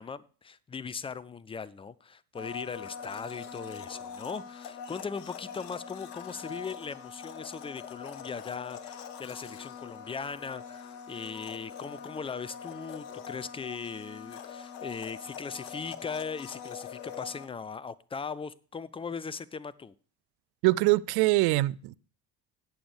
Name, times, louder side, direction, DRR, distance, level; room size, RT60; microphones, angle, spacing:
voice 1, 0.0-19.9, left 5 dB, 10° left, 0.4 m, -39 dB
Domestic sounds home sounds, 2.3-17.5, left 7 dB, 75° left, 1.0 m, -43 dB
voice 2, 20.6-21.9, right 20 dB, 50° right, 0.5 m, -23 dB
17.5 x 6.9 x 3.3 m
figure-of-eight pair, 50°, 49 cm